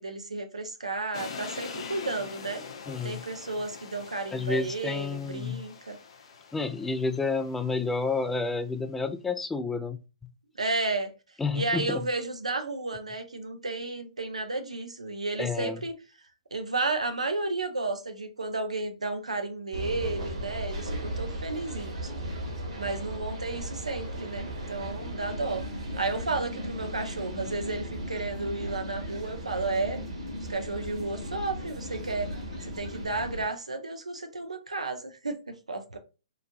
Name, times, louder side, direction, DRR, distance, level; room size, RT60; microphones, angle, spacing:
voice 1, 0.0-2.6 3.0-6.0 10.6-11.1 11.5-16.0 16.5-22.1 22.8-25.6 26.0-30.0 30.5-32.3 32.6-36.0, right 3 dB, 85° right, 0.7 m, -32 dB
sound 1, 1.1-8.2, left 5 dB, 55° left, 0.5 m, -43 dB
voice 2, 2.9-3.2 4.3-5.6 6.5-10.0 11.4-12.0 15.4-15.8, left 4 dB, 5° left, 0.3 m, -30 dB
sound 2, 19.7-33.4, equal, 65° right, 1.4 m, -36 dB
3.0 x 2.5 x 2.5 m
figure-of-eight pair, 130°, 3 cm